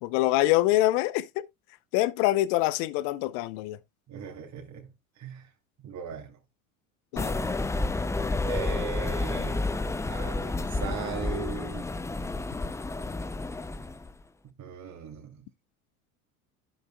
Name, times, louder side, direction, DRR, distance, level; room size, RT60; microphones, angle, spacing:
voice 1, 0.0-1.4 1.9-3.8 7.1-7.4, left 16 dB, 60° left, 0.8 m, -25 dB
voice 2, 4.1-4.9 5.2-5.5 5.8-6.4 8.5-9.7 10.0-11.8 14.6-15.4, right 7 dB, 40° right, 2.8 m, -38 dB
sound 1, 7.2-14.1, left 2 dB, 5° left, 0.5 m, -30 dB
14.5 x 5.5 x 2.2 m
hypercardioid pair, 80°, 43 cm